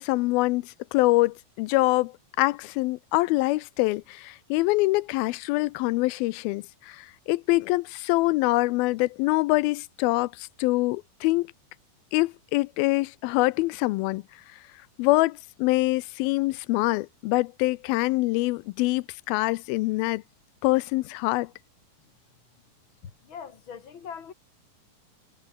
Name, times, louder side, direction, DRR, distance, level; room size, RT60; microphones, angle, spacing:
voice 1, 0.0-2.1 2.4-11.5 12.1-14.2 15.0-20.2 20.6-21.5, left 21 dB, 90° left, 2.5 m, -25 dB
voice 2, 23.0-24.3, left 7 dB, 40° left, 2.3 m, -41 dB
omnidirectional pair, 4.3 m